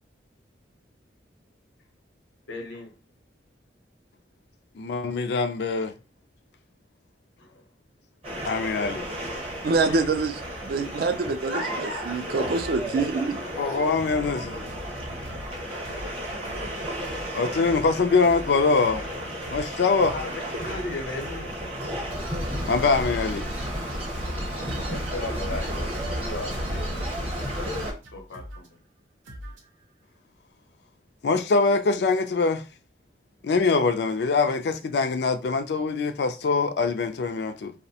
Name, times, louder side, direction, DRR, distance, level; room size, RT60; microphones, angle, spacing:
voice 1, 2.5-2.9 7.4-7.7 9.7-10.1 12.3-12.6 14.2-14.3 20.0-21.6 24.5-27.9 28.1-28.8, left 2 dB, 80° left, 0.8 m, -37 dB
voice 2, 4.8-5.9 8.4-9.1 13.6-14.6 17.3-19.1 19.5-20.1 22.7-23.5 31.2-32.6 33.4-37.7, left 4 dB, 60° left, 0.3 m, -23 dB
sound 1, 8.2-27.9, equal, 30° right, 0.8 m, -33 dB
voice 3, 9.6-10.4 10.6-13.4, right 4 dB, 50° right, 0.3 m, -25 dB
sound 2, 12.3-12.9 13.4-14.4 14.7-15.0 15.2-16.2 16.4-16.8 17.0-19.2 19.4-23.9 24.1-26.3 26.5-28.7 29.2-29.8, equal, 90° right, 0.6 m, -43 dB
2.6 x 2.0 x 2.7 m
head